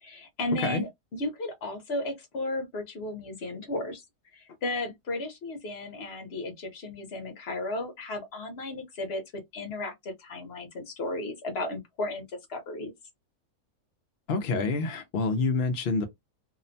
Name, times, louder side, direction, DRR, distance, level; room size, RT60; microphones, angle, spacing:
voice 1, 0.0-4.0 4.3-9.2 9.5-12.9, left 2 dB, 50° left, 0.9 m, -34 dB
voice 2, 14.3-16.0, left 4 dB, 70° left, 0.5 m, -27 dB
2.8 x 2.1 x 2.6 m
omnidirectional pair, 1.7 m